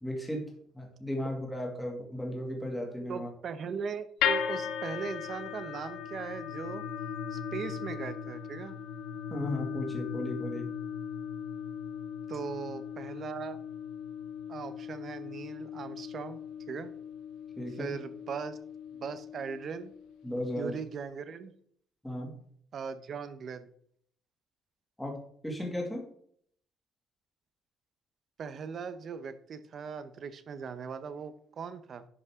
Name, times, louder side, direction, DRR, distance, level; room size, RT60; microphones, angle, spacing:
voice 1, 0.0-0.4 0.7-3.3 9.3-10.7 17.6-17.9 20.2-20.7 22.0-22.4 25.0-26.0, left 1 dB, 5° left, -1 dB, 2.1 m, -35 dB
voice 2, 3.1-6.8 7.3-8.8 12.3-13.6 14.5-16.4 16.7-16.9 17.7-18.6 18.9-19.9 20.6-21.5 22.7-23.7 28.4-32.1, right 6 dB, 40° right, 12 dB, 0.7 m, -39 dB
sound 1, 4.2-20.4, left 8 dB, 85° left, 0.9 m, -38 dB
11.0 x 5.5 x 3.6 m, 0.63 s
cardioid pair, 160°, 0 cm